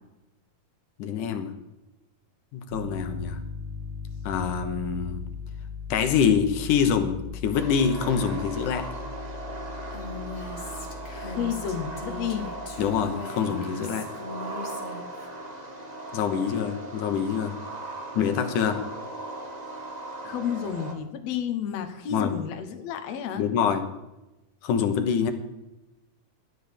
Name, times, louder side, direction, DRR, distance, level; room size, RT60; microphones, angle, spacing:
voice 1, 1.0-1.5 2.5-3.4 4.2-5.2 5.9-8.9 12.8-14.1 16.1-17.6 18.1-18.8 22.1-22.3 23.4-23.9 24.6-25.3, left 7 dB, 90° left, 7 dB, 2.7 m, -25 dB
Piano, 2.7-13.0, left 4 dB, 80° right, 3.7 m, -39 dB
sound 1, 7.5-20.9, right 2 dB, 25° right, 0.8 m, -38 dB
Female speech woman speaking, 9.9-15.3, left 2 dB, 25° left, 1.8 m, -40 dB
voice 2, 11.1-12.5 20.2-23.5, left 8 dB, 65° left, 7 dB, 2.2 m, -31 dB
12.5 x 10.5 x 6.8 m, 0.98 s
omnidirectional pair, 3.4 m